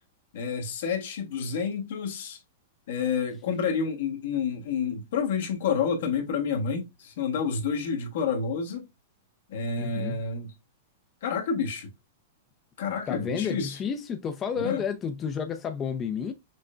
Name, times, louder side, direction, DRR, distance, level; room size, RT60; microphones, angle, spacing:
voice 1, 0.3-2.4 2.9-8.9 9.5-10.5 11.2-11.9 12.8-13.8 14.6-14.8, left 6 dB, 70° left, 1.2 m, -29 dB
voice 2, 9.8-10.2 13.1-16.3, left 7 dB, 25° left, 0.4 m, -31 dB
6.0 x 2.2 x 2.4 m
hypercardioid pair, 145°, 0 cm